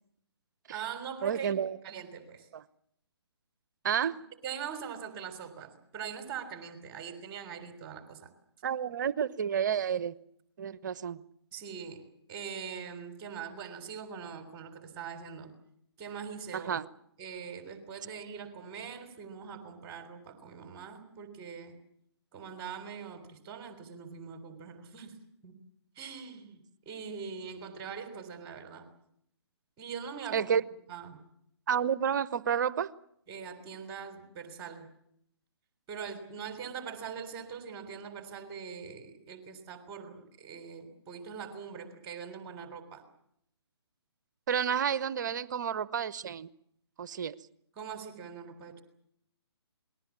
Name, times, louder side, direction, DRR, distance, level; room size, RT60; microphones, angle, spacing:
voice 1, 0.7-1.6 1.8-2.5 4.0-4.1 4.4-8.3 11.5-12.0 12.3-15.5 16.0-16.8 17.2-21.8 22.3-25.2 25.4-25.6 26.0-26.6 26.9-28.9 29.8-30.5 30.9-31.2 33.3-34.9 35.9-43.0 47.8-48.8, right 7 dB, 25° right, 7 dB, 3.6 m, -42 dB
voice 2, 1.2-1.8 2.5-2.6 3.8-4.1 8.6-10.2 10.6-11.2 16.5-16.8 30.3-30.6 31.7-32.9 44.5-46.5 47.0-47.4, right 8 dB, 45° right, 18 dB, 0.9 m, -30 dB
28.0 x 20.5 x 7.4 m, 0.73 s
figure-of-eight pair, 140°, 14 cm